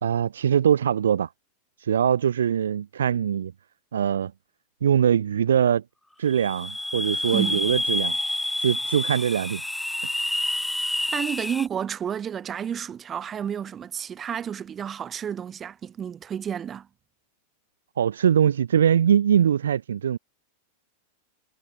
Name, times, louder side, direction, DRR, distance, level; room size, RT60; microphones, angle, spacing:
voice 1, 0.0-1.3 1.8-3.5 3.9-4.3 4.8-5.8 6.2-8.2 8.6-9.6 18.0-20.2, right 8 dB, 65° right, 2.9 m, -22 dB
sound 1, 6.3-11.7, left 1 dB, 5° left, 3.7 m, -28 dB
voice 2, 7.3-7.6 11.1-16.9, right 8 dB, 25° right, 6.0 m, -31 dB
figure-of-eight pair, 90°, 0 cm